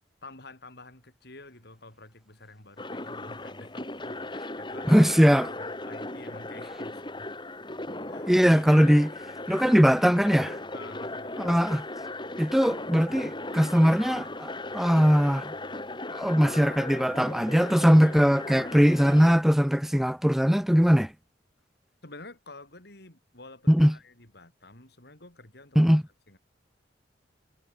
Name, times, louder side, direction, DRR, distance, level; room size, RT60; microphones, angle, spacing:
voice 1, 0.2-5.1 5.5-7.3 8.1-8.4 10.7-11.5 22.0-25.8 26.3-26.4, left 2 dB, 60° left, 6.2 m, -49 dB
sound 1, 2.8-19.3, left 2 dB, 25° left, 5.9 m, -37 dB
voice 2, 4.9-5.5 8.2-9.1 9.5-10.6 11.4-11.8 12.4-15.5 16.1-21.1 23.7-23.9 25.8-26.0, equal, ahead, 0.5 m, -21 dB
head